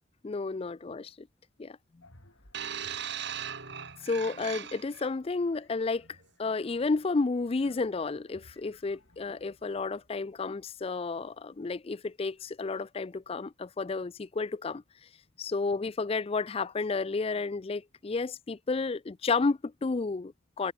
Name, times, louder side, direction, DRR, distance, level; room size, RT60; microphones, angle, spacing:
voice 1, 0.2-1.3 1.6-1.8 4.0-14.8 15.4-20.7, left 3 dB, 30° left, 0.4 m, -31 dB
sound 1, 2.0-10.8, left 2 dB, 75° left, 7.2 m, -61 dB
sound 2, 2.5-5.1 6.0-6.2, right 8 dB, 55° right, 2.7 m, -38 dB
head